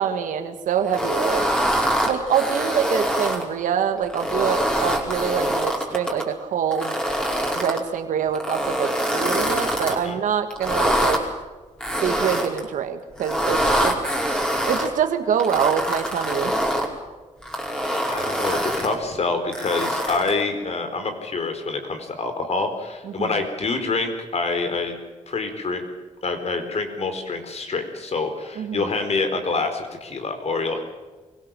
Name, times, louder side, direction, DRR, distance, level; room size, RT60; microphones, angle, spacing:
voice 1, 0.0-1.4 2.0-6.9 7.5-11.2 12.0-13.9 14.6-16.5 23.0-23.4 28.6-28.9, right 8 dB, 90° right, 7 dB, 1.7 m, -25 dB
sound 1, 0.9-3.4 4.0-6.2 6.7-7.8 8.3-10.0 10.5-11.2 11.8-12.6 13.2-14.9 15.4-16.9 17.4-18.9 19.5-20.4, equal, 5° left, 4.9 m, -24 dB
voice 2, 9.8-10.2 18.1-24.9 25.3-25.8 26.2-30.8, left 3 dB, 55° left, 6 dB, 4.4 m, -26 dB
23.5 x 17.5 x 7.6 m, 1.3 s
cardioid pair, 70°, 13 cm